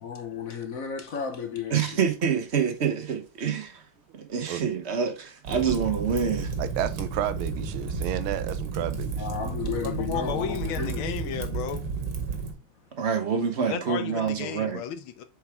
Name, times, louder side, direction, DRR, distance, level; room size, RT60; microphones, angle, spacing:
voice 1, 0.0-2.0 9.2-11.4, left 6 dB, 55° left, 1.1 m, -33 dB
voice 2, 1.7-3.8 4.1-6.5 13.0-14.8, right 7 dB, 45° right, 0.9 m, -27 dB
Fire, 5.4-12.5, right 5 dB, 60° right, 1.9 m, -32 dB
voice 3, 6.6-9.3, right 12 dB, 85° right, 1.6 m, -31 dB
voice 4, 9.8-11.8 13.6-15.2, left 8 dB, 80° left, 1.6 m, -33 dB
7.2 x 4.7 x 3.4 m
omnidirectional pair, 2.2 m